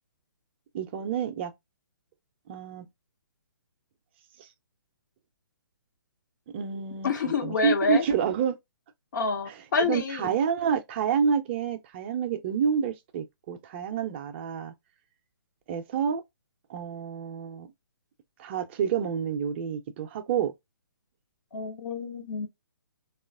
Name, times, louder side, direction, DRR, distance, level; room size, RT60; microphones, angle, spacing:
voice 1, 0.7-1.5 2.5-2.8 4.4-4.5 6.5-8.6 9.5-9.6 9.9-14.7 15.7-16.2 16.7-17.7 18.4-20.5, right 7 dB, 30° right, 0.5 m, -28 dB
voice 2, 7.0-8.1 9.1-10.3 21.5-22.5, left 4 dB, 55° left, 0.8 m, -28 dB
3.0 x 2.4 x 2.4 m
figure-of-eight pair, 140°, 12 cm